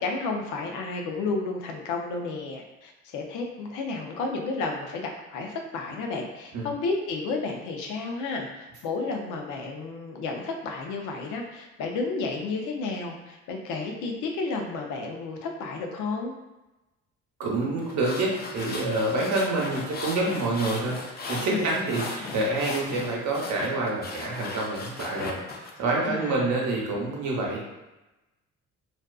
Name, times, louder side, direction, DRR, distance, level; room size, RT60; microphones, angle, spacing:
voice 1, 0.0-16.3 21.5-21.7 26.0-26.5, left 3 dB, 90° left, 2 dB, 0.5 m, -32 dB
voice 2, 17.4-21.0 21.3-27.7, right 2 dB, 70° right, -2 dB, 0.8 m, -27 dB
sound 1, 17.8-25.7, left 3 dB, 35° left, 0.4 m, -37 dB
2.5 x 2.4 x 2.2 m, 1.0 s
cardioid pair, 90°, 30 cm